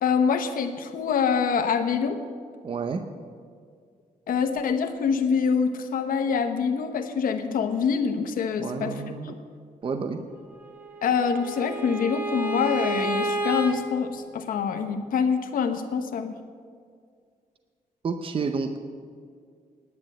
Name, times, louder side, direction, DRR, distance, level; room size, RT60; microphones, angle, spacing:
voice 1, 0.0-2.2 4.3-8.9 9.2-9.4 11.0-16.4, left 6 dB, 85° left, 7 dB, 1.0 m, -25 dB
voice 2, 2.6-3.0 8.6-9.4 9.8-10.2 18.0-18.8, right 5 dB, 40° right, 7 dB, 0.7 m, -30 dB
Bowed string instrument, 10.6-13.7, right 2 dB, 10° right, 1.4 m, -30 dB
9.7 x 9.6 x 7.6 m, 2.1 s
cardioid pair, 120°, 14 cm